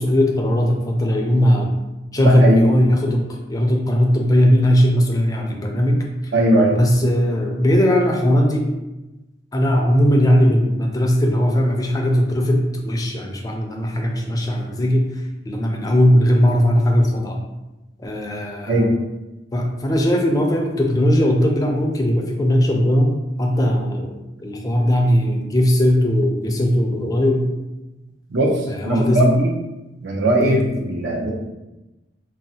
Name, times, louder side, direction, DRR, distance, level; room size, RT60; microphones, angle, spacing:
voice 1, 0.0-1.7 2.1-6.0 6.7-8.6 9.5-15.0 15.5-17.4 18.0-18.9 19.5-27.5 28.7-29.4 30.4-30.6, equal, 20° left, 1 dB, 0.4 m, -18 dB
voice 2, 2.2-2.6 6.3-6.8 18.7-18.9 28.3-29.5 30.0-31.3, right 1 dB, 65° right, 0 dB, 0.6 m, -19 dB
3.8 x 2.0 x 2.7 m, 1.0 s
head